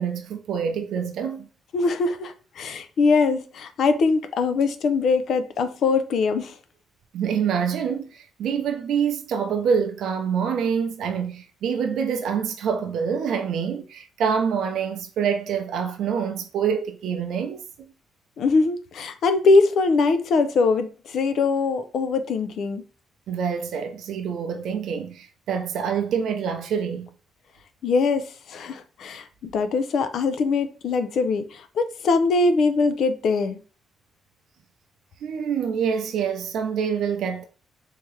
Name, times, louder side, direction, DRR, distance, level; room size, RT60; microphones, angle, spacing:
voice 1, 0.0-1.5 7.1-17.9 23.3-27.1 35.2-37.4, right 7 dB, 75° right, 0.5 m, -26 dB
voice 2, 1.7-6.6 18.4-22.8 27.8-33.6, left 4 dB, 65° left, 0.5 m, -22 dB
3.5 x 2.9 x 3.1 m
cardioid pair, 90°, 0 cm